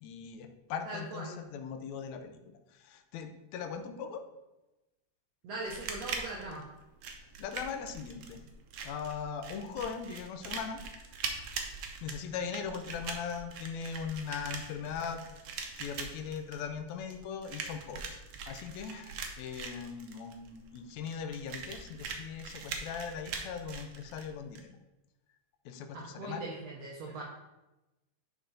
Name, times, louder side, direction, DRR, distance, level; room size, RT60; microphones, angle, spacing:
voice 1, 0.0-2.3 2.8-4.2 7.4-8.4 8.8-10.8 12.0-15.4 15.8-18.2 18.5-24.7 25.7-26.4, left 6 dB, 75° left, 7 dB, 1.8 m, -39 dB
voice 2, 0.9-1.3 5.4-6.6 25.9-27.2, right 2 dB, 70° right, -2 dB, 1.7 m, -40 dB
sound 1, 5.6-24.6, right 5 dB, 85° right, 1.3 m, -42 dB
10.5 x 3.8 x 3.9 m, 1.0 s
omnidirectional pair, 3.8 m